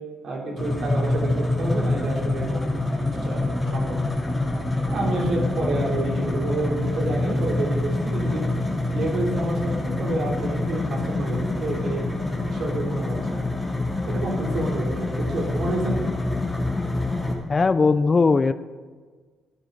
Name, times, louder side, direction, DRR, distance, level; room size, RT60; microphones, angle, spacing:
voice 1, 0.2-4.1 4.9-8.5 8.9-12.0 12.5-13.4 14.0-16.0, right 2 dB, 65° right, -1 dB, 3.2 m, -29 dB
sound 1, 0.6-17.3, left 2 dB, 15° left, 2.9 m, -26 dB
voice 2, 17.5-18.5, left 4 dB, 30° left, 14 dB, 0.4 m, -18 dB
15.0 x 9.5 x 4.0 m, 1.5 s
cardioid pair, 90°, 0 cm